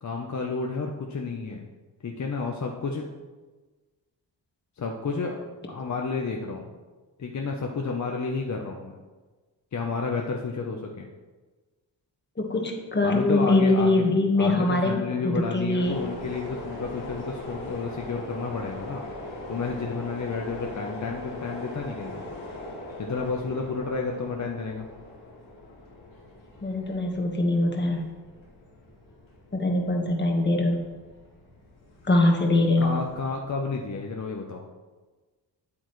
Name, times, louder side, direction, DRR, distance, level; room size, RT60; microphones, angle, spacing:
voice 1, 0.0-1.6 2.0-3.0 4.8-5.4 5.7-6.7 7.2-9.0 9.7-11.1 13.0-14.1 14.4-19.0 19.5-22.2 23.0-24.9 32.8-34.7, left 4 dB, 40° left, 1 dB, 0.8 m, -31 dB
voice 2, 12.4-14.9 15.2-16.0 26.6-28.1 29.5-30.8 32.0-33.0, left 2 dB, 25° left, 1 dB, 1.4 m, -23 dB
sound 1, 15.8-33.3, left 1 dB, 90° left, 2.7 m, -41 dB
8.9 x 8.5 x 3.2 m, 1.3 s
cardioid pair, 80°, 45 cm